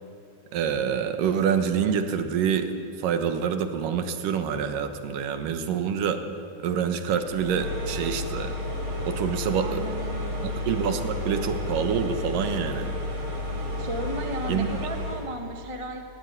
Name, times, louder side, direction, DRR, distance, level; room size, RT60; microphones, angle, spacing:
voice 1, 0.5-2.7 3.0-6.2 6.6-8.5 9.0-9.8 10.4-12.9 14.5-14.7, right 7 dB, 85° right, 7 dB, 2.9 m, -26 dB
sound 1, 7.2-15.3, left 1 dB, 50° right, 5.1 m, -31 dB
voice 2, 9.6-10.6 13.8-16.1, right 1 dB, 30° right, 4 dB, 0.6 m, -35 dB
19.5 x 17.0 x 9.6 m, 2.4 s
omnidirectional pair, 3.7 m